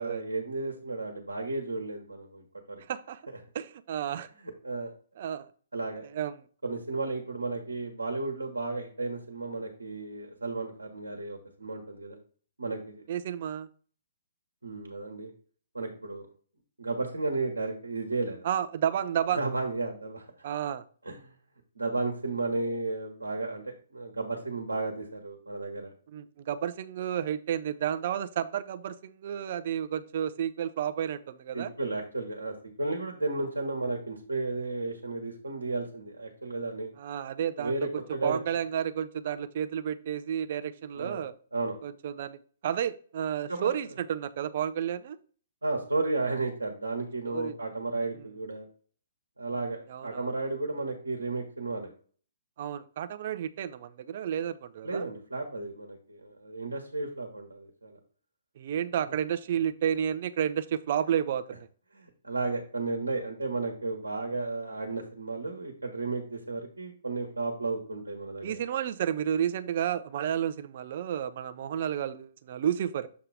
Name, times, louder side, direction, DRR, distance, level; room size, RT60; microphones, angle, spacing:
voice 1, 0.0-2.8 4.6-4.9 5.7-6.0 6.6-12.2 12.6-13.1 14.6-15.3 15.7-16.3 16.8-18.5 19.4-20.2 21.0-21.3 21.7-25.9 31.5-36.9 37.5-38.4 40.9-41.8 43.5-43.7 45.6-48.7 49.4-51.9 54.8-58.0 61.9-68.6, right 3 dB, 80° right, 2 dB, 1.3 m, -33 dB
voice 2, 2.9-3.2 3.5-4.3 5.2-5.5 6.1-6.4 13.1-13.7 18.4-19.4 20.4-20.8 26.1-31.7 37.0-37.7 38.2-41.3 41.8-42.4 42.6-45.2 47.3-47.5 49.9-50.3 52.6-55.1 58.6-61.7 68.4-73.1, right 9 dB, 50° right, 12 dB, 0.5 m, -31 dB
7.1 x 2.9 x 4.9 m, 0.43 s
figure-of-eight pair, 125°, 0 cm